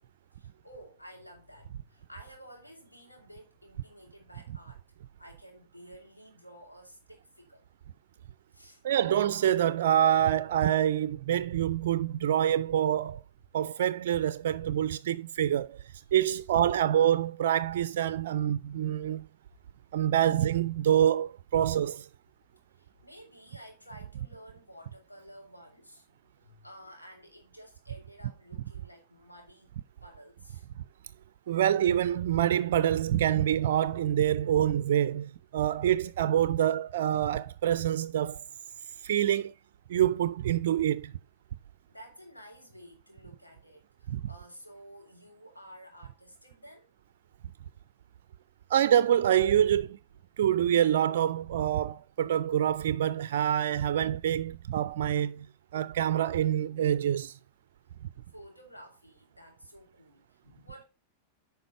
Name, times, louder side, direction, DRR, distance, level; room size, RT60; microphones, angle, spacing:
voice 1, 0.0-7.7 8.5-8.8 22.7-29.7 30.0-30.7 41.9-46.9 58.3-60.8, equal, 85° left, 2.7 m, -52 dB
voice 2, 8.8-13.2 13.5-15.8 16.1-19.3 19.9-22.1 31.5-38.4 39.0-39.5 39.9-41.1 44.1-44.2 48.7-50.0 50.4-55.5 55.7-57.4, right 10 dB, 60° right, 0.3 m, -26 dB
9.1 x 5.4 x 4.2 m
figure-of-eight pair, 90°, 0 cm